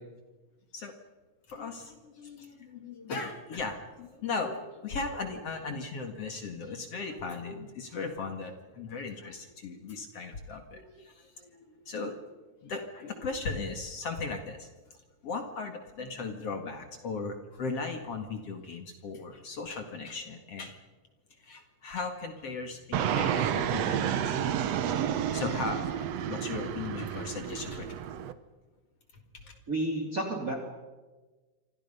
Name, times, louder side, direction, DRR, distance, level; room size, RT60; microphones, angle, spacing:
voice 1, 1.5-12.2 12.6-14.7 15.2-20.8 21.4-24.8 25.3-28.0 29.4-29.6, left 4 dB, 50° left, 5 dB, 2.6 m, -37 dB
Fixed-wing aircraft airplane, 22.9-28.3, right 9 dB, 65° right, 1.9 m, -30 dB
voice 2, 29.7-30.7, right 1 dB, 25° right, 1 dB, 3.3 m, -31 dB
28.0 x 25.5 x 5.6 m, 1.2 s
omnidirectional pair, 4.0 m